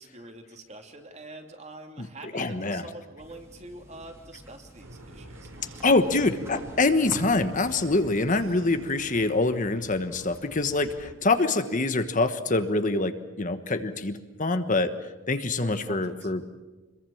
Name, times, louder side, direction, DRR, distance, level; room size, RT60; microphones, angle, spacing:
voice 1, 0.0-6.0 15.6-16.3, right 2 dB, 35° right, 4 dB, 2.9 m, -45 dB
voice 2, 2.3-2.8 5.8-14.9 15.3-16.4, left 2 dB, 40° left, 9 dB, 1.3 m, -25 dB
sound 1, 3.2-9.7, right 1 dB, 15° right, 2.8 m, -46 dB
sound 2, 4.8-11.1, right 1 dB, 85° right, 3.1 m, -46 dB
26.0 x 22.5 x 7.2 m, 1.2 s
head